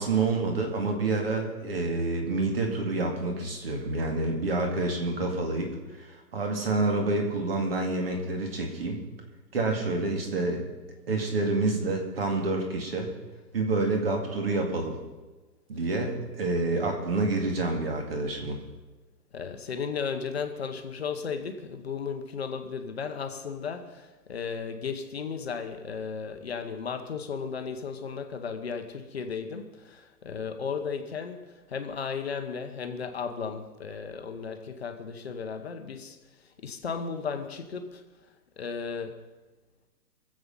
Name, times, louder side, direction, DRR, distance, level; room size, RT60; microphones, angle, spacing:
voice 1, 0.0-5.7 6.0-9.0 9.5-10.6 11.1-13.1 13.5-15.0 15.7-18.6, right 3 dB, 35° right, 2.2 m, -28 dB
voice 2, 19.3-36.2 36.6-38.0 38.6-39.2, left 6 dB, 40° left, 1.1 m, -35 dB
23.0 x 7.8 x 5.5 m
hypercardioid pair, 180°, 50 cm